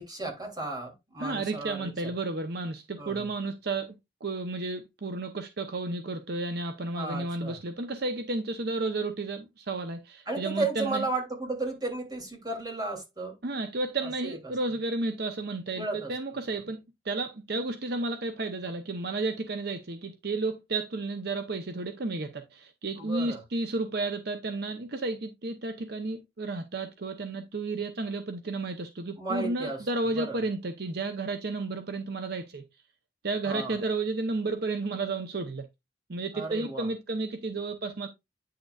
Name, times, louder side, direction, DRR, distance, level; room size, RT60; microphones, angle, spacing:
voice 1, 0.0-2.1 3.0-3.2 6.9-7.6 10.3-13.4 14.0-14.5 15.7-16.2 23.0-23.4 29.2-29.8 30.1-30.4 33.4-33.8 36.3-36.9, right 2 dB, 25° right, 2.9 m, -34 dB
voice 2, 1.2-3.9 4.2-11.1 13.4-16.8 17.0-32.6 33.2-35.6 36.1-38.1, right 3 dB, 60° right, 0.8 m, -32 dB
9.3 x 6.6 x 2.4 m
head